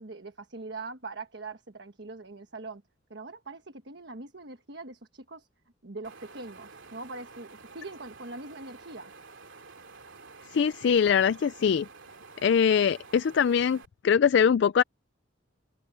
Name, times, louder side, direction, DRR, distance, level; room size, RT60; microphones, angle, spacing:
voice 1, 0.0-2.8 3.1-5.5 5.8-9.1, right 3 dB, 55° right, 1.4 m, -42 dB
Wind, 6.0-13.9, right 4 dB, 70° right, 2.6 m, -50 dB
voice 2, 10.5-11.9 12.4-14.8, left 7 dB, 60° left, 0.3 m, -23 dB
head